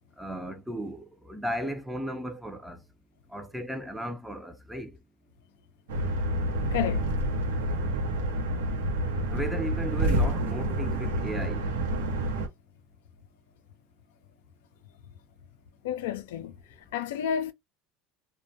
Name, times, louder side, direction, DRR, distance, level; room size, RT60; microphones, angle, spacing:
voice 1, 0.2-2.8 3.3-4.9 9.3-11.7, right 1 dB, 5° right, 0.5 m, -35 dB
sound 1, 5.9-12.5, right 1 dB, 85° right, 0.7 m, -28 dB
voice 2, 6.7-7.1 15.8-16.5 16.9-17.5, left 9 dB, 80° left, 0.3 m, -30 dB
2.2 x 2.1 x 2.7 m
supercardioid pair, 95°, 0 cm